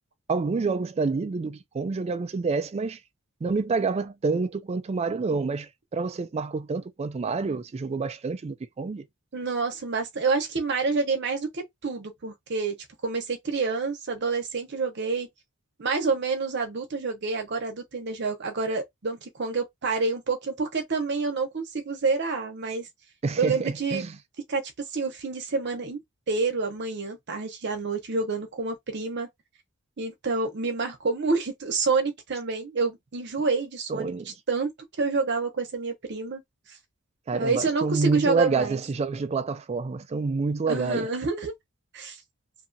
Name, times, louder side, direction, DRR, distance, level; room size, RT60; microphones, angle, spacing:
voice 1, 0.3-3.0 3.4-9.0 23.2-24.1 33.9-34.3 37.3-41.1, right 4 dB, 30° right, 0.3 m, -28 dB
voice 2, 9.3-12.8 13.0-15.3 15.8-22.9 23.4-24.0 24.5-26.0 26.3-29.3 30.0-34.7 35.0-36.4 36.7-36.8 37.3-38.8 40.7-41.5 41.9-42.2, right 4 dB, 55° right, 0.8 m, -28 dB
2.7 x 2.3 x 2.6 m
head